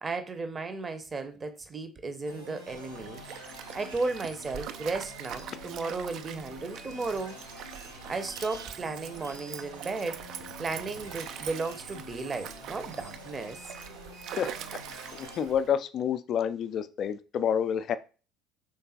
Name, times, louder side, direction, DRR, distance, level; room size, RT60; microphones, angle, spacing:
voice 1, 0.0-3.2 3.7-7.4 8.1-10.2 10.6-13.6, right 3 dB, 25° right, 0.7 m, -34 dB
sound 1, 2.2-15.4, equal, 90° right, 2.4 m, -47 dB
Stream, 2.7-15.7, right 9 dB, 50° right, 0.3 m, -44 dB
voice 2, 15.1-18.0, left 8 dB, 45° left, 0.3 m, -28 dB
5.1 x 3.6 x 2.8 m
figure-of-eight pair, 60°, 0 cm